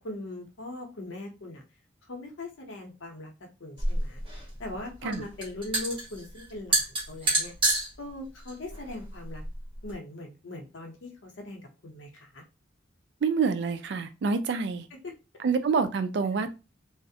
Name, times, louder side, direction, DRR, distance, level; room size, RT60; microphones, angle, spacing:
voice 1, 0.0-1.6 2.0-7.5 8.0-9.4 9.8-12.4 14.9-15.1, left 2 dB, 85° left, 2 dB, 0.7 m, -40 dB
sound 1, 3.8-9.9, right 1 dB, 25° right, 1.1 m, -30 dB
voice 2, 13.2-14.9 15.4-16.5, right 5 dB, 65° right, 10 dB, 0.3 m, -27 dB
2.4 x 2.0 x 2.7 m, 0.29 s
head